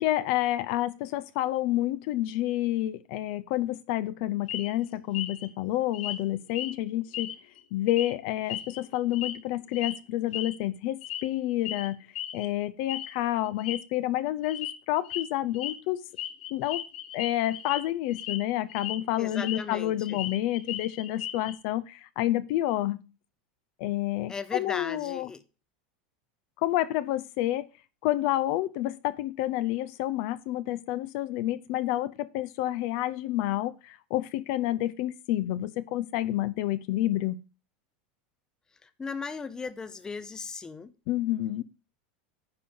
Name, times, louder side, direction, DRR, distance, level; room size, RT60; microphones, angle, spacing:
voice 1, 0.0-7.3 7.7-12.1 12.3-16.0 16.5-16.8 17.1-23.0 23.8-25.3 26.6-27.7 28.0-37.4 41.1-41.6, left 14 dB, 60° left, 15 dB, 0.7 m, -29 dB
sound 1, 4.5-4.7 5.1-5.5 5.9-6.2 6.5-6.7 7.1-7.6 7.9-8.1 8.5-9.4 9.7-9.9 10.3-10.5 11.0-11.3 11.6-11.9 12.1-12.5 12.9-13.1 13.5-13.8 14.4-14.7 15.0-15.2 15.5-15.7 16.2-17.8 18.1-18.4 18.7-19.6 19.9-21.5, left 11 dB, 85° left, 1.5 m, -36 dB
voice 2, 19.2-20.2 24.3-25.4 38.8-40.9, left 4 dB, 15° left, 12 dB, 0.7 m, -37 dB
10.0 x 3.8 x 6.9 m, 0.32 s
supercardioid pair, 140°, 5 cm